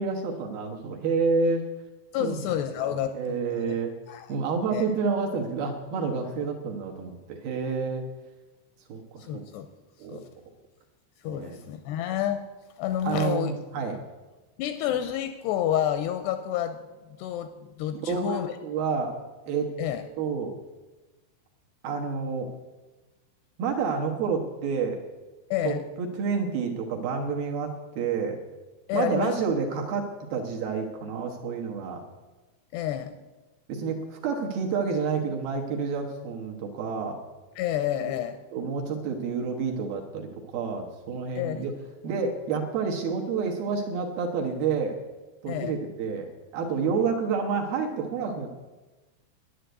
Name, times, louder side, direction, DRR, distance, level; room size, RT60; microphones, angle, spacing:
voice 1, 0.0-1.6 2.2-2.4 2.8-3.9 4.3-8.0 8.9-9.4 10.0-10.2 11.3-11.6 13.0-14.0 17.9-19.1 19.5-19.7 20.2-20.5 21.8-22.5 23.6-25.0 25.6-28.4 28.9-32.0 33.7-37.2 38.0-38.1 38.5-41.7 42.0-45.0 45.4-46.3 46.5-48.5, right 5 dB, 65° right, 1 dB, 2.6 m, -29 dB
voice 2, 2.1-3.8 4.1-4.3 4.7-4.9 9.2-9.7 10.1-10.2 11.2-12.4 12.8-13.5 14.6-16.8 17.2-18.5 19.8-20.1 25.5-25.8 28.9-29.3 32.7-33.1 37.6-38.4 41.4-41.8 45.5-45.8, left 11 dB, 80° left, 9 dB, 2.5 m, -29 dB
11.5 x 9.9 x 8.0 m, 1.2 s
omnidirectional pair, 5.2 m